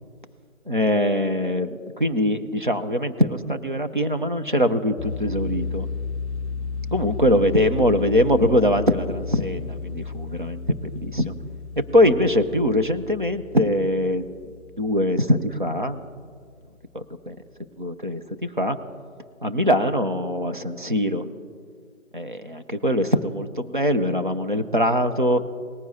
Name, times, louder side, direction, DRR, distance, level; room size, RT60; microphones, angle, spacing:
voice 1, 0.7-5.9 6.9-10.6 11.0-11.3 11.8-14.2 14.8-16.0 16.9-17.4 17.8-18.8 19.4-21.3 22.1-25.4, equal, 40° right, 7 dB, 0.6 m, -22 dB
sound 1, 5.0-15.8, left 4 dB, 5° left, 2.3 m, -33 dB
19.5 x 9.9 x 2.7 m, 2.1 s
figure-of-eight pair, 155°, 41 cm